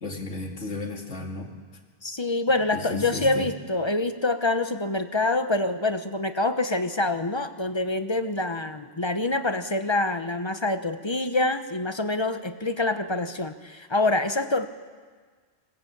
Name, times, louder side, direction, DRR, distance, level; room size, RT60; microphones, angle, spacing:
voice 1, 0.0-1.5 2.7-3.5, left 2 dB, 60° left, 2 dB, 2.7 m, -34 dB
voice 2, 2.0-14.7, left 2 dB, 25° left, 9 dB, 0.8 m, -26 dB
20.5 x 17.0 x 8.7 m, 1.5 s
omnidirectional pair, 1.4 m